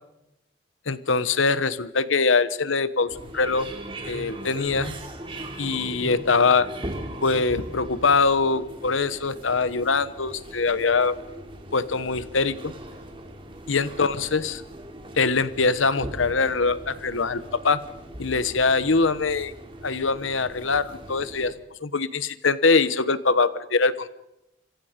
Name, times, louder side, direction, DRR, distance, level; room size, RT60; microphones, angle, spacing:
voice 1, 0.9-3.7 4.0-4.9 5.6-6.7 7.2-11.2 11.7-12.7 13.7-14.6 15.2-17.8 18.2-19.5 19.8-21.5 21.8-24.1, left 4 dB, 90° left, 14 dB, 1.1 m, -23 dB
sound 1, 3.1-21.5, right 1 dB, 25° right, 3.3 m, -39 dB
27.5 x 26.5 x 5.2 m, 0.89 s
head